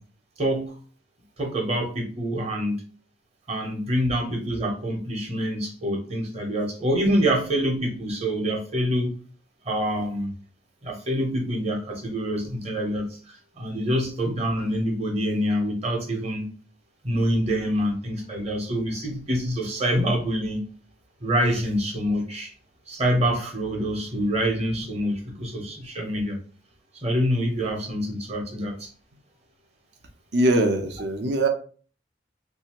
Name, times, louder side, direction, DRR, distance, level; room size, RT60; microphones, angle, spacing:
voice 1, 0.4-0.7 1.4-2.8 3.5-9.1 9.7-10.3 10.8-13.1 13.6-16.5 17.0-20.6 21.2-22.5 22.9-26.4 27.0-28.9, equal, 35° right, 1 dB, 0.9 m, -26 dB
voice 2, 30.3-31.5, right 1 dB, 65° right, 4 dB, 0.7 m, -22 dB
3.2 x 2.7 x 2.9 m, 0.40 s
head